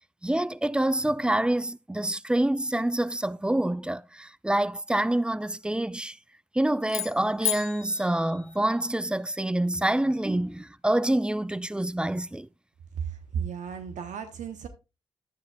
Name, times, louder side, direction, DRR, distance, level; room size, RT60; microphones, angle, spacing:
voice 1, 0.2-6.2 6.5-12.5, right 1 dB, 5° right, 0.4 m, -26 dB
sound 1, 6.8-9.2, left 9 dB, 50° left, 0.6 m, -34 dB
voice 2, 12.9-14.7, right 7 dB, 65° right, 1.0 m, -34 dB
11.0 x 9.6 x 2.3 m
hypercardioid pair, 45°, 14 cm